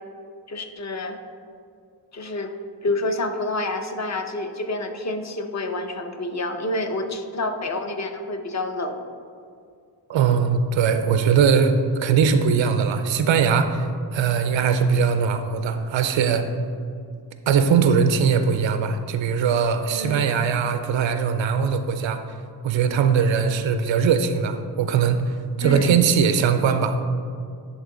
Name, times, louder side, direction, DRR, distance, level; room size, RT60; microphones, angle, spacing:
voice 1, 0.5-1.2 2.1-2.5 2.8-9.0 19.9-20.3 25.6-25.9, left 2 dB, 40° left, 5 dB, 0.6 m, -28 dB
voice 2, 10.1-13.8 14.1-16.5 17.5-22.2 22.6-27.0, right 6 dB, 85° right, 9 dB, 0.6 m, -20 dB
10.5 x 3.6 x 3.8 m, 2.3 s
cardioid pair, 85°, 44 cm